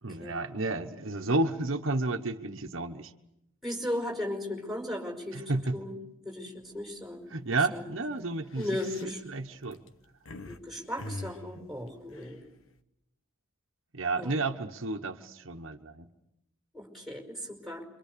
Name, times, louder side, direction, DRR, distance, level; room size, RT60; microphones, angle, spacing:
voice 1, 0.0-3.1 5.3-5.8 7.3-8.7 9.0-9.8 13.9-16.1, right 2 dB, 75° right, 4 dB, 1.2 m, -31 dB
voice 2, 3.6-5.4 5.7-5.9 6.2-7.4 7.7-7.8 8.6-9.2 10.5-12.4 14.2-14.3 16.7-17.9, left 1 dB, ahead, 2 dB, 5.4 m, -36 dB
sound 1, 6.6-6.9 7.3-7.5 8.3-10.6 11.0-12.8, left 2 dB, 85° left, 1.3 m, -43 dB
27.5 x 24.5 x 6.9 m, 0.84 s
head